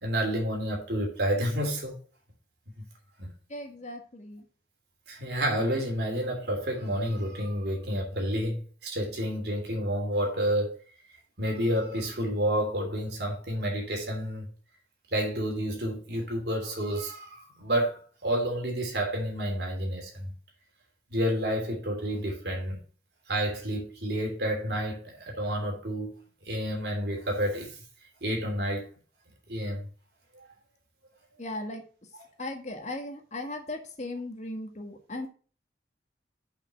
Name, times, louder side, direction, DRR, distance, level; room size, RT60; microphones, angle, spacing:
voice 1, 0.0-1.9 3.2-3.3 5.1-10.8 11.4-14.5 15.1-20.3 21.1-22.8 23.3-26.2 26.4-27.8 28.2-28.9 29.5-29.8 30.3-30.4, equal, 65° right, 3.2 m, -30 dB
voice 2, 3.5-4.5 31.4-31.8 32.4-35.3, left 1 dB, 40° left, 1.7 m, -37 dB
6.8 x 5.7 x 6.7 m
head